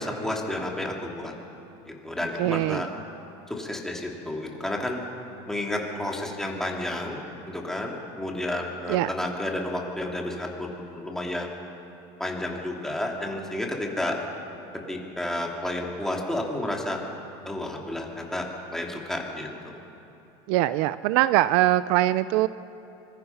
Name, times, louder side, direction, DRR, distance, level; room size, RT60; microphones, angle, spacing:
voice 1, 0.0-1.3 2.0-2.9 3.5-5.0 5.5-11.5 12.2-14.2 14.9-17.0 17.5-19.7, left 1 dB, 5° left, -1 dB, 2.7 m, -31 dB
voice 2, 2.4-2.8 8.9-9.1 20.5-22.5, right 15 dB, 65° right, 15 dB, 0.5 m, -22 dB
24.5 x 20.5 x 5.8 m, 2.9 s
cardioid pair, 145°, 14 cm